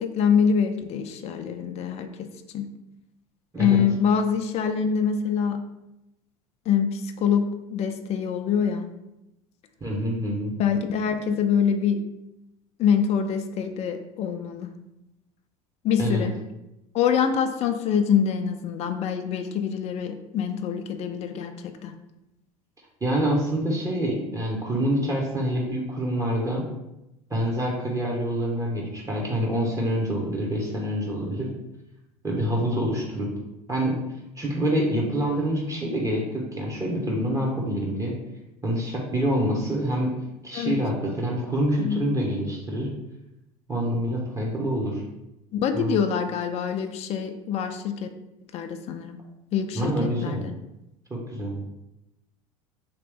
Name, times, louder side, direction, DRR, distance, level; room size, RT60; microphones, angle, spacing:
voice 1, 0.0-2.7 3.6-5.6 6.7-8.9 10.6-12.0 12.8-14.7 15.8-16.3 16.9-21.5 21.8-21.9 40.5-40.8 41.8-42.0 45.5-48.1 48.5-49.2 49.5-50.5, left 7 dB, 35° left, 7 dB, 0.4 m, -25 dB
voice 2, 9.8-10.5 16.0-16.2 23.0-26.6 27.3-31.5 32.2-33.3 33.7-34.0 34.4-38.1 38.6-40.1 40.4-42.9 43.7-45.0 45.7-46.0 49.7-50.4 51.1-51.6, equal, 20° right, -3 dB, 1.0 m, -26 dB
3.0 x 2.9 x 3.4 m, 0.90 s
hypercardioid pair, 75°, 18 cm